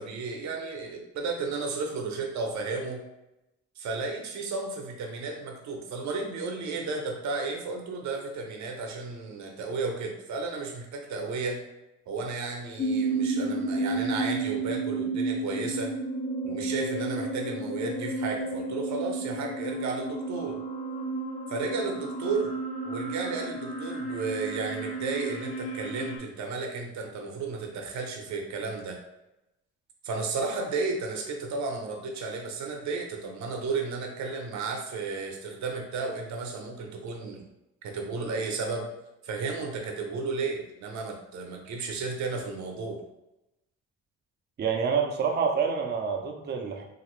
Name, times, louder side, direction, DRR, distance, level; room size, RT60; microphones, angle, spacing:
voice 1, 0.0-3.0 3.8-11.6 12.1-15.9 16.4-20.6 21.5-22.5 22.8-29.0 30.0-37.5 37.8-38.9 39.2-43.0, right 4 dB, 65° right, 2 dB, 0.7 m, -33 dB
sound 1, 12.8-26.2, right 2 dB, 25° left, 0.5 m, -32 dB
voice 2, 44.6-46.9, right 6 dB, 35° right, 3 dB, 0.5 m, -27 dB
3.0 x 2.5 x 3.0 m, 0.92 s
cardioid pair, 90°, 30 cm